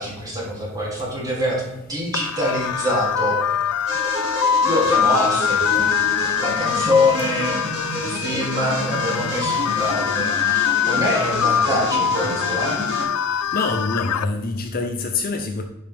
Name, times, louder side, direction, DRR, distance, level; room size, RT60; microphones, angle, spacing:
voice 1, 0.0-3.4 4.6-7.6 7.9-12.8, left 1 dB, 15° right, -5 dB, 3.0 m, -25 dB
sound 1, 2.1-14.3, left 8 dB, 85° left, 0.4 m, -23 dB
sound 2, 3.9-13.0, right 1 dB, 55° right, 2.6 m, -30 dB
voice 2, 13.5-15.6, left 3 dB, 45° left, 5 dB, 0.6 m, -25 dB
10.0 x 5.5 x 3.6 m, 0.94 s
head